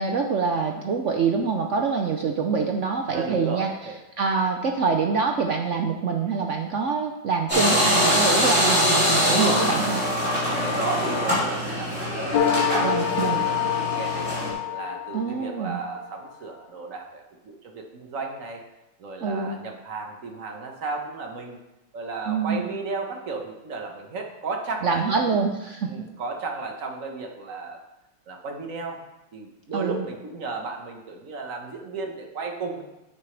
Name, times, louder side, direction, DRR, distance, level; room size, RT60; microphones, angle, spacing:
voice 1, 0.0-3.7 4.2-10.0 12.8-13.4 15.1-15.8 19.2-19.6 22.3-22.6 24.8-25.9 29.7-30.0, right 5 dB, 65° right, 3 dB, 0.7 m, -25 dB
voice 2, 3.1-3.9 10.5-14.2 14.7-18.6 19.0-21.6 21.9-25.4 25.9-27.8 28.3-29.0 29.3-32.8, right 4 dB, 45° right, 2 dB, 1.5 m, -34 dB
sound 1, 7.5-14.5, equal, 5° right, 3.8 m, -23 dB
sound 2, 12.3-15.7, left 9 dB, 70° left, 1.4 m, -26 dB
9.6 x 8.9 x 3.3 m, 0.97 s
omnidirectional pair, 2.0 m